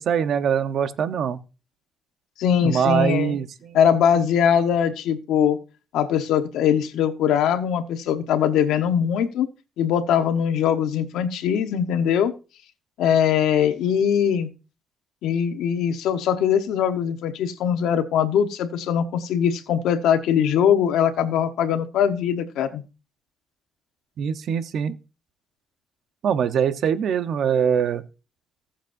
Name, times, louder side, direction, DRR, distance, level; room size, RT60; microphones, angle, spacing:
voice 1, 0.0-1.4 2.6-3.8 24.2-25.0 26.2-28.0, right 8 dB, 65° right, 1.0 m, -23 dB
voice 2, 2.4-3.4 3.7-5.6 5.9-9.5 9.8-12.3 13.0-14.5 15.2-22.8, left 8 dB, 85° left, 1.1 m, -21 dB
20.0 x 7.3 x 2.7 m
cardioid pair, 90°, 0 cm